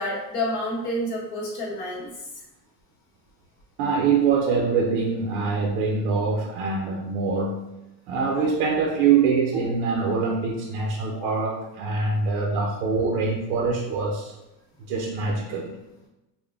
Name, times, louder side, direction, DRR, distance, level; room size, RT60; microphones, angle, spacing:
voice 1, 0.0-2.1 9.5-9.6 11.2-11.3, left 1 dB, 45° left, -5 dB, 1.2 m, -29 dB
voice 2, 3.8-7.7 8.1-14.3 14.9-15.8, right 5 dB, 60° right, 0 dB, 0.6 m, -24 dB
3.8 x 2.2 x 3.3 m, 0.94 s
cardioid pair, 170°, 43 cm